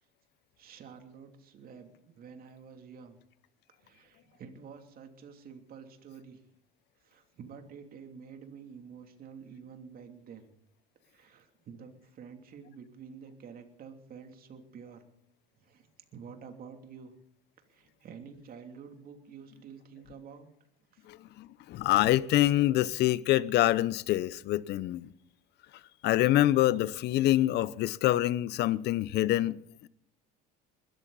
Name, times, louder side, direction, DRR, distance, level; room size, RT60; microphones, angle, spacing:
voice 1, 0.6-3.2 3.8-6.4 7.0-10.5 11.0-15.1 15.6-15.8 16.1-17.1 17.7-20.5 20.9-21.1, right 6 dB, 45° right, 3.0 m, -49 dB
voice 2, 21.1-25.1 26.0-29.6 29.8-29.9, left 15 dB, 55° left, 0.8 m, -26 dB
21.0 x 13.5 x 4.1 m
supercardioid pair, 105°, 21 cm